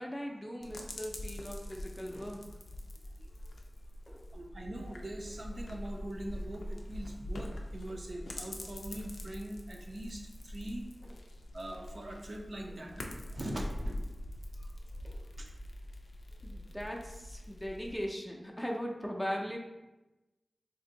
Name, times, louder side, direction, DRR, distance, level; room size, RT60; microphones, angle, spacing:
voice 1, 0.0-2.5 4.1-4.3 15.0-15.3 16.4-19.6, equal, 5° left, 0 dB, 0.4 m, -39 dB
sound 1, 0.6-18.0, left 1 dB, 90° left, 0.4 m, -44 dB
voice 2, 3.2-3.5 4.3-10.9 11.5-14.1 14.6-14.7 15.0-15.1 15.4-15.5 16.5-16.6, right 1 dB, 55° right, 1 dB, 0.5 m, -42 dB
2.6 x 2.5 x 3.8 m, 1.0 s
wide cardioid pair, 90°, 0 cm